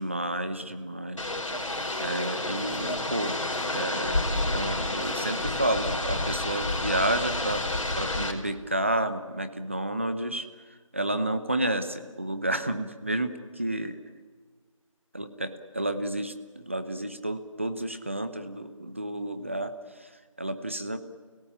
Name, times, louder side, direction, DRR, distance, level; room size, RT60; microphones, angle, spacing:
voice 1, 0.0-1.3 1.6-3.4 3.7-4.2 4.5-7.6 8.0-10.5 10.9-14.0 15.1-19.7 20.0-20.1 20.4-21.0, right 1 dB, 20° right, 9 dB, 1.0 m, -30 dB
sound 1, 1.2-8.3, left 2 dB, 65° left, 4.6 m, -30 dB
30.0 x 17.5 x 8.7 m, 1.5 s
figure-of-eight pair, 180°, 17 cm